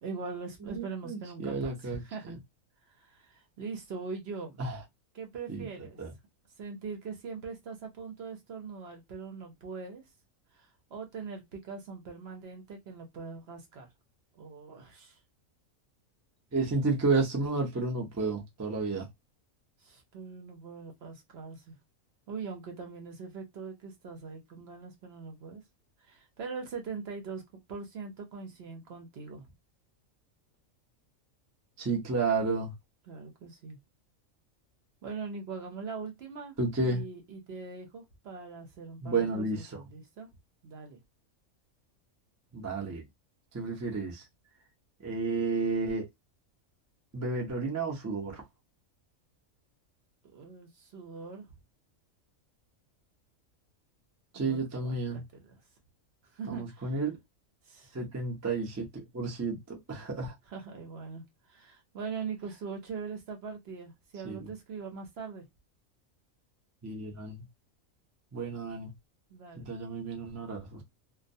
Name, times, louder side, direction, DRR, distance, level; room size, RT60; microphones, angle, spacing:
voice 1, 0.0-2.4 2.9-4.6 5.1-6.0 6.6-10.0 10.5-13.9 14.3-15.2 19.8-21.8 22.3-25.6 26.0-27.4 27.7-29.5 33.1-33.8 35.0-40.3 40.6-41.0 50.3-51.5 54.3-55.6 56.3-57.0 57.6-58.0 60.5-65.5 69.3-69.6, right 5 dB, 60° right, 0.8 m, -42 dB
voice 2, 0.7-2.3 4.6-4.8 5.5-5.6 6.0-6.1 16.5-19.1 31.8-32.7 36.6-37.0 39.0-39.8 42.5-43.0 43.5-44.2 45.0-46.1 47.1-48.4 54.3-55.2 56.5-57.1 57.9-60.3 64.2-64.5 66.8-67.4 68.3-68.9 69.6-70.8, right 3 dB, 25° right, 0.3 m, -31 dB
2.3 x 2.1 x 2.6 m
omnidirectional pair, 1.4 m